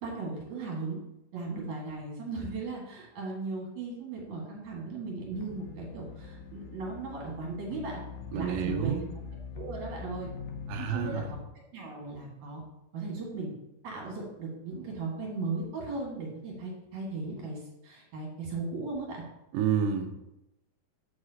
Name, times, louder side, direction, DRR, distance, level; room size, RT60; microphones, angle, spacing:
voice 1, 0.0-1.0 1.3-8.0 8.3-9.0 9.5-10.3 10.8-11.2 11.7-12.6 12.9-13.5 13.8-19.2, right 3 dB, 55° right, -3 dB, 2.6 m, -37 dB
sound 1, 5.3-11.5, left 5 dB, 90° left, 1.9 m, -43 dB
voice 2, 8.3-9.1 10.7-11.3 19.5-20.2, right 7 dB, 85° right, 4 dB, 1.9 m, -29 dB
7.8 x 7.3 x 2.8 m, 0.91 s
omnidirectional pair, 4.9 m